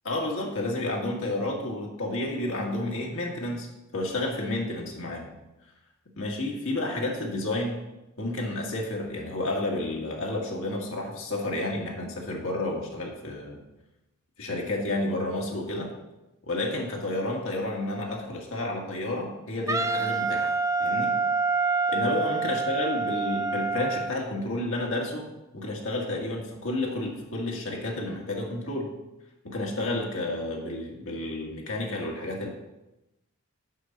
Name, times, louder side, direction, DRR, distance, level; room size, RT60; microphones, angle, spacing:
voice 1, 0.0-3.7 3.9-5.3 6.2-7.8 8.2-13.6 14.4-15.9 16.5-20.5 20.8-21.1 21.9-25.3 25.5-28.9 29.4-32.5, left 2 dB, 70° left, -1 dB, 1.7 m, -31 dB
Wind instrument woodwind instrument, 19.7-24.1, right 4 dB, 15° right, 0.3 m, -27 dB
6.4 x 5.6 x 6.4 m, 0.97 s
head